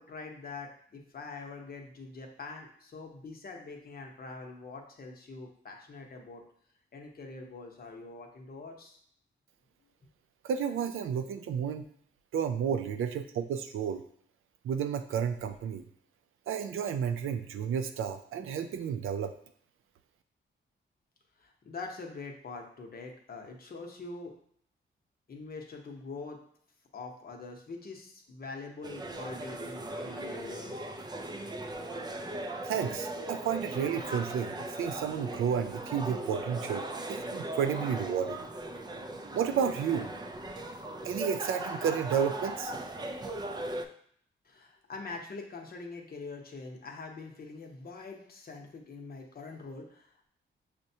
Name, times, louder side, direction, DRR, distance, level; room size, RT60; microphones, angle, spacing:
voice 1, 0.0-6.4 6.9-9.0 21.4-24.3 25.3-26.4 26.9-30.8 44.4-50.3, left 3 dB, 45° left, 1 dB, 0.8 m, -44 dB
voice 2, 10.4-11.8 12.3-14.0 14.6-15.8 16.5-19.3 32.6-38.4 39.3-40.1 41.0-42.7, right 7 dB, 85° right, 8 dB, 0.4 m, -31 dB
sound 1, 28.8-43.9, right 1 dB, 20° right, 0.4 m, -38 dB
6.2 x 2.2 x 2.7 m, 0.64 s
cardioid pair, 85°, 21 cm